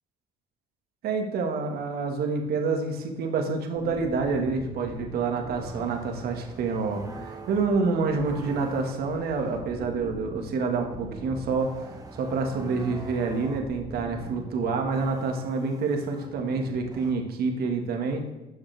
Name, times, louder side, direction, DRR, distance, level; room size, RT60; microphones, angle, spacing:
voice 1, 1.0-18.3, right 4 dB, 65° right, 4 dB, 1.7 m, -28 dB
sound 1, 3.8-17.1, right 2 dB, 20° right, 1.6 m, -42 dB
12.5 x 7.4 x 3.4 m, 1.1 s
cardioid pair, 110°, 17 cm